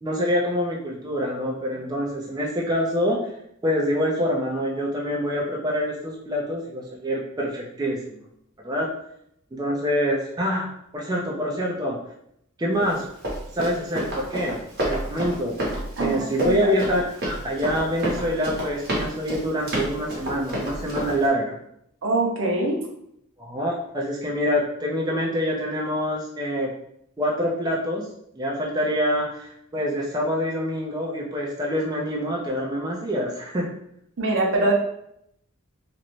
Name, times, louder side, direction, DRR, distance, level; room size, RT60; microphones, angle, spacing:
voice 1, 0.0-3.2 3.6-8.2 8.6-8.9 9.5-10.7 10.9-12.0 12.6-13.0 13.5-14.6 14.8-15.5 16.0-21.6 23.4-26.7 27.2-28.1 28.4-33.7, equal, 20° right, -3 dB, 0.3 m, -26 dB
Run, 12.8-21.3, equal, 50° right, 0.9 m, -30 dB
voice 2, 16.0-16.7 22.0-22.8 34.2-34.7, right 2 dB, 65° right, 1 dB, 0.5 m, -23 dB
2.5 x 2.1 x 3.0 m, 0.74 s
head